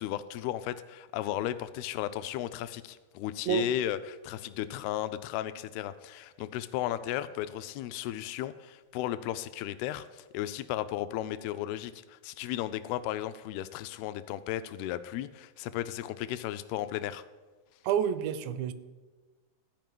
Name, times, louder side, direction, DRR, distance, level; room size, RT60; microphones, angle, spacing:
voice 1, 0.0-17.2, left 13 dB, 85° left, 2.3 m, -35 dB
voice 2, 17.8-18.7, right 9 dB, 85° right, 2.9 m, -28 dB
14.0 x 5.1 x 9.2 m
omnidirectional pair, 4.9 m